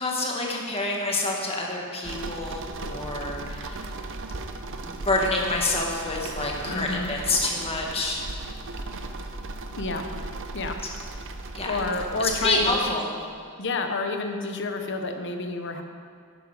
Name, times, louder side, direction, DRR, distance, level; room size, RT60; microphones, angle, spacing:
voice 1, 0.0-3.8 4.9-8.2 11.5-11.8 12.2-13.1, left 2 dB, 25° left, -1 dB, 1.8 m, -27 dB
sound 1, 2.0-12.9, right 2 dB, 60° right, 0.8 m, -36 dB
voice 2, 6.7-7.1 9.8-10.1 10.5-10.8 11.6-12.7 13.6-15.8, left 3 dB, 55° left, 5 dB, 1.0 m, -29 dB
11.5 x 9.9 x 5.0 m, 2.2 s
head